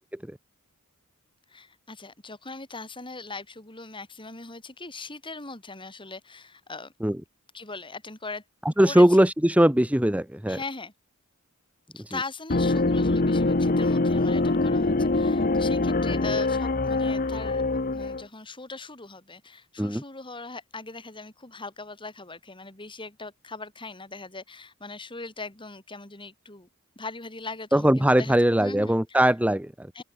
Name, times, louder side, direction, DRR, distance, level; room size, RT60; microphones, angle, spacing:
voice 1, 1.5-6.9 7.5-8.4 8.8-9.3 10.5-10.9 11.9-17.6 17.9-26.7 27.0-29.2 29.9-30.0, left 3 dB, 20° left, 5.3 m, -40 dB
voice 2, 8.8-10.6 12.1-12.2 19.8-20.0 27.7-29.9, right 1 dB, 5° right, 1.0 m, -20 dB
sound 1, 12.5-18.2, left 2 dB, 40° left, 1.1 m, -24 dB
open air
head